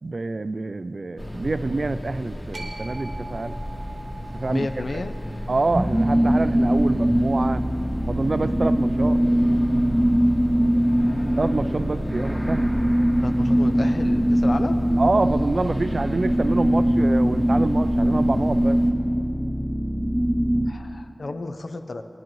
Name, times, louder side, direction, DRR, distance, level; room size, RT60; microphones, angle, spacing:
voice 1, 0.0-3.6 4.3-4.7 4.9-5.0 5.5-7.6 8.1-9.2 11.4-12.7 15.0-18.8, right 3 dB, 65° right, 12 dB, 0.3 m, -26 dB
sound 1, 1.2-18.9, equal, 30° left, 1.6 m, -34 dB
sound 2, 2.5-8.8, right 2 dB, 80° right, 1.1 m, -44 dB
voice 2, 4.5-5.2 13.2-14.8 20.7-22.0, left 2 dB, 80° left, 7 dB, 0.6 m, -32 dB
sound 3, 5.7-20.7, equal, 10° right, 0.5 m, -21 dB
18.0 x 10.5 x 3.1 m, 2.8 s
wide cardioid pair, 65°, 0 cm